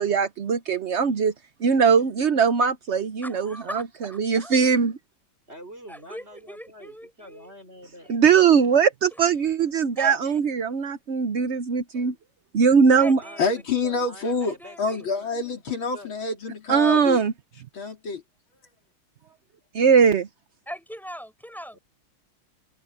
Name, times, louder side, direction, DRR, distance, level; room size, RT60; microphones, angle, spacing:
voice 1, 0.0-1.3 1.6-4.9 8.1-12.1 12.5-13.2 16.7-17.3 19.7-20.3, right 6 dB, 70° right, 0.6 m, -20 dB
voice 2, 3.2-3.8 4.4-4.5 5.9-7.5 8.0-8.2 10.0-10.4 13.0-13.8 14.5-15.1 20.7-21.8, equal, ahead, 7.0 m, -40 dB
voice 3, 5.5-8.1 13.1-15.3 15.9-16.1 21.7-21.8, equal, 30° right, 5.8 m, -46 dB
voice 4, 13.4-17.2 17.7-18.2, left 4 dB, 65° left, 3.6 m, -27 dB
omnidirectional pair, 2.3 m